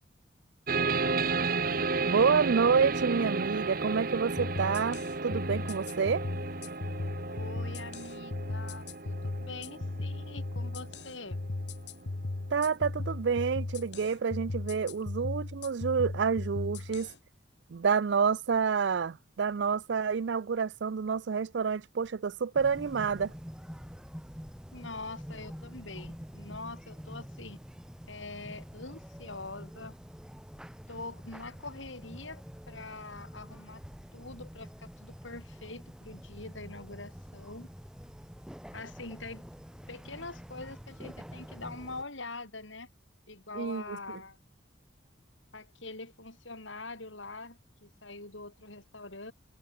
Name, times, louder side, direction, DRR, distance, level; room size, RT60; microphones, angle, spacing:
sound 1, 0.7-11.9, right 4 dB, 45° right, 1.4 m, -33 dB
voice 1, 2.0-6.2 12.5-17.1 17.7-23.3 43.5-44.0, right 6 dB, 65° right, 0.4 m, -28 dB
sound 2, 4.4-17.1, left 2 dB, 60° left, 0.9 m, -37 dB
voice 2, 7.3-11.4 24.7-27.6 28.1-29.9 30.9-33.8 34.1-37.7 38.7-39.5 39.9-42.9 43.3-44.4 45.5-49.3, left 3 dB, 75° left, 5.6 m, -44 dB
sound 3, 22.6-42.0, equal, 5° right, 1.3 m, -47 dB
head